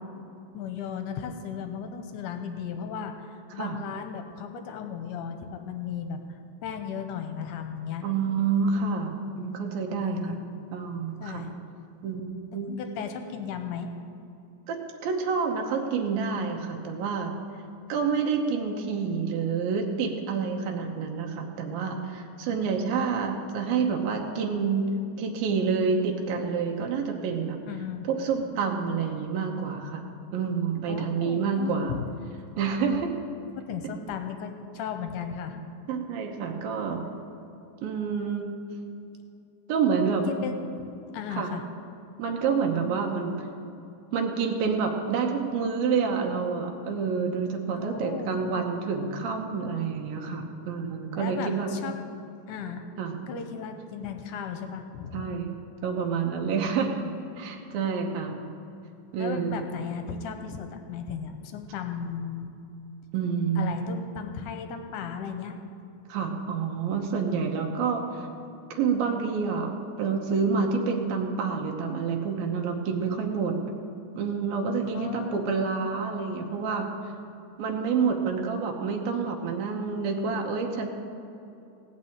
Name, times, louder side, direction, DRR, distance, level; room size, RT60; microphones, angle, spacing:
voice 1, 0.5-8.1 10.0-10.4 11.2-11.6 12.7-13.9 27.7-28.1 30.9-32.1 33.6-35.6 40.3-40.9 41.1-41.6 47.8-48.5 51.2-51.9 52.5-52.9 53.3-55.3 59.2-62.5 63.6-65.6 74.9-75.6, left 7 dB, 70° left, 6 dB, 2.1 m, -35 dB
voice 2, 8.0-10.4 10.7-11.4 12.0-12.2 12.5-12.8 14.7-14.8 15.0-17.4 17.9-24.9 25.2-27.6 28.1-31.9 32.6-33.1 35.9-37.0 37.8-38.5 39.7-40.3 41.3-41.5 42.2-43.5 44.1-51.7 53.0-53.2 55.1-55.6 55.8-57.0 57.4-58.4 59.1-59.7 63.1-63.9 66.1-68.3 68.7-69.7 70.0-73.5 74.2-77.1 77.6-80.9, right 5 dB, 85° right, 2 dB, 2.8 m, -28 dB
17.5 x 6.2 x 8.7 m, 2.8 s
omnidirectional pair, 4.2 m